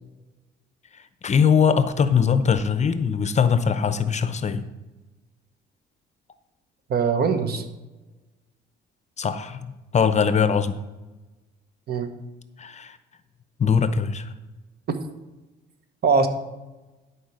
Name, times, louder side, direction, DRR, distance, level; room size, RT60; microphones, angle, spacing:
voice 1, 1.2-4.7 9.2-10.8 12.6-13.0 13.6-14.3, left 6 dB, 35° left, 12 dB, 0.7 m, -21 dB
voice 2, 6.9-7.6 11.9-12.1 16.0-16.3, right 5 dB, 50° right, 8 dB, 1.2 m, -21 dB
11.5 x 4.7 x 6.4 m, 1.1 s
cardioid pair, 105°, 20 cm